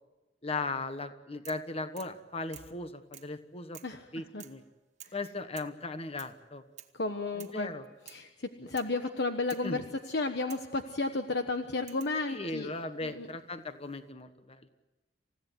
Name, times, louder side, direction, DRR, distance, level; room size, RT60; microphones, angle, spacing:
voice 1, 0.4-3.8 4.1-4.6 5.1-6.6 7.5-7.8 9.6-9.8 12.3-14.7, left 3 dB, 35° left, 10 dB, 1.3 m, -37 dB
sound 1, 1.4-1.7 2.0-2.2 2.5-2.8 3.1-3.4 3.7-4.0 4.4-4.7 5.0-5.2 5.6-5.8 6.2-6.4 6.8-7.0 7.4-7.6 8.1-8.3 8.7-9.0 9.5-9.7 10.5-10.7 11.9-12.2 13.3-13.8, right 11 dB, 40° right, 1.4 m, -51 dB
voice 2, 3.8-4.5 5.0-5.1 6.9-7.7 8.0-12.7 13.0-13.3, left 3 dB, 65° left, 6 dB, 1.2 m, -33 dB
28.5 x 16.5 x 9.3 m, 1.2 s
head